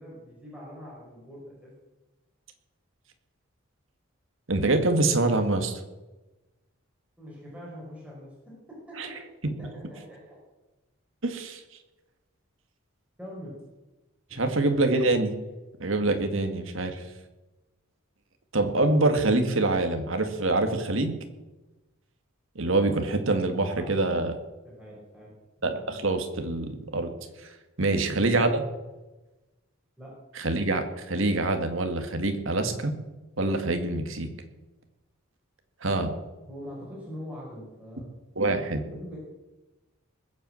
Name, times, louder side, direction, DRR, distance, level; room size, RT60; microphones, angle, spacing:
voice 1, 0.0-1.7 7.2-9.1 9.6-10.3 13.2-13.5 14.3-14.5 23.8-24.2 24.6-25.3 27.9-28.1 30.0-30.1 36.5-38.1 38.9-39.2, equal, 5° right, -5 dB, 5.1 m, -43 dB
voice 2, 4.5-5.8 9.0-9.1 11.2-11.6 14.3-15.3 15.8-17.0 18.5-21.1 22.6-24.3 25.6-27.1 27.4-27.5 27.8-28.6 30.4-32.9 33.4-34.3 35.8-36.1 38.4-38.8, right 2 dB, 70° right, 6 dB, 1.9 m, -25 dB
20.5 x 8.1 x 7.7 m, 1.1 s
head